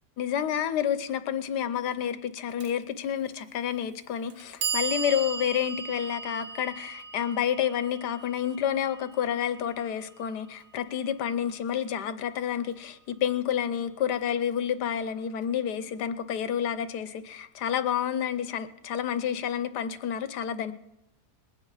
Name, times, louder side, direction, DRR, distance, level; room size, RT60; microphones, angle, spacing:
voice 1, 0.2-20.7, left 9 dB, 90° left, 12 dB, 1.4 m, -29 dB
Clock, 2.6-2.7 3.7-3.8 4.3-10.3, right 5 dB, 60° right, 1.3 m, -37 dB
20.5 x 9.4 x 4.9 m, 0.87 s
omnidirectional pair, 1.7 m